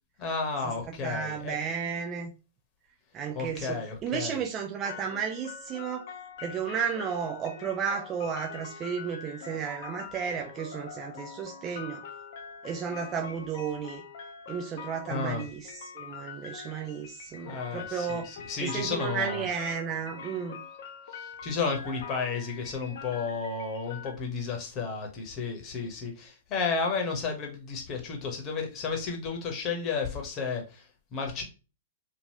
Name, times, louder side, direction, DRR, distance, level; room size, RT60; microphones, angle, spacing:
voice 1, 0.2-1.6 3.3-4.4 15.1-15.5 17.4-19.5 21.1-31.4, left 4 dB, 35° left, 2 dB, 1.0 m, -32 dB
voice 2, 1.0-2.3 3.1-6.1 6.4-12.0 12.6-14.0 14.5-18.3 18.6-20.6, right 7 dB, 30° right, 2 dB, 0.4 m, -33 dB
sound 1, 4.8-24.1, left 6 dB, 60° left, 0.6 m, -44 dB
3.0 x 2.5 x 2.8 m, 0.31 s
hypercardioid pair, 110°, 0 cm